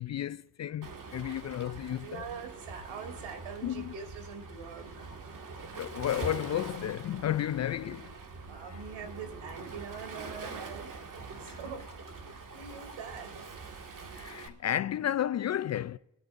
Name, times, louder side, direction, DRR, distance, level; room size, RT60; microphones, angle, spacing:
voice 1, 0.0-2.3 3.6-3.9 5.8-8.1 8.6-8.8 11.5-11.6 14.2-16.0, left 11 dB, 40° left, 0.4 m, -33 dB
Waves surf, 0.8-14.5, right 4 dB, 40° right, 2.2 m, -44 dB
voice 2, 1.6-5.1 8.4-11.1 11.3-13.5, right 6 dB, 75° right, 3.1 m, -44 dB
21.5 x 13.0 x 2.6 m
cardioid pair, 90°, 47 cm